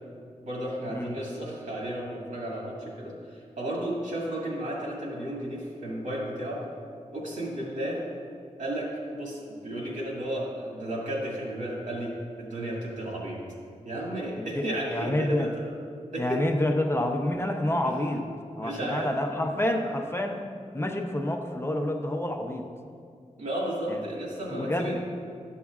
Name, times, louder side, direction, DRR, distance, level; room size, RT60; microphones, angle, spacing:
voice 1, 0.4-6.6 7.1-8.0 8.6-12.1 12.4-13.4 13.8-15.5 16.1-16.4 18.6-19.4 23.4-25.0, right 1 dB, 85° right, -4 dB, 2.0 m, -33 dB
voice 2, 14.4-15.5 16.2-18.2 18.5-20.5 20.7-22.7 23.9-24.0 24.5-25.0, left 1 dB, 20° left, 3 dB, 0.6 m, -28 dB
12.0 x 7.2 x 2.4 m, 2.3 s
wide cardioid pair, 105°, 13 cm